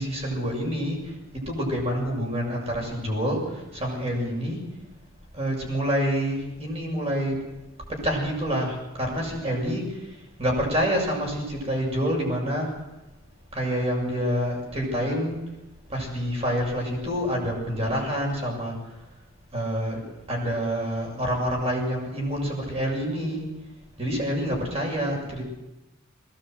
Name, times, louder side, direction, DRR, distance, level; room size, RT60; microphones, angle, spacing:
voice 1, 0.0-4.6 5.3-7.4 7.9-12.8 13.5-15.6 15.9-19.0 19.5-20.0 20.3-23.5 24.0-25.5, equal, 30° right, 0 dB, 7.2 m, -27 dB
20.5 x 18.0 x 8.0 m, 0.99 s
head